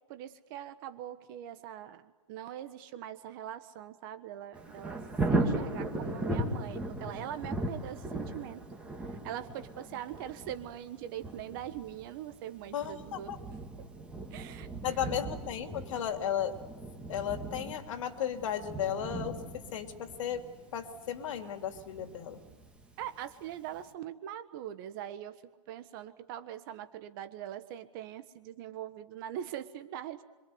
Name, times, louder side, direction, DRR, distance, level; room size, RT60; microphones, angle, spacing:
voice 1, 0.1-5.0 5.3-8.6 9.1-13.3 14.3-15.0 23.0-25.4 25.7-30.2, right 11 dB, 35° right, 11 dB, 1.4 m, -42 dB
Thunder, 4.5-23.3 23.8-23.9, right 2 dB, 5° right, 2.2 m, -38 dB
voice 2, 12.7-13.4 14.8-16.6 17.1-20.4 20.7-22.4, left 9 dB, 55° left, 6 dB, 3.0 m, -35 dB
26.0 x 24.5 x 8.1 m, 1.2 s
hypercardioid pair, 155°, 20 cm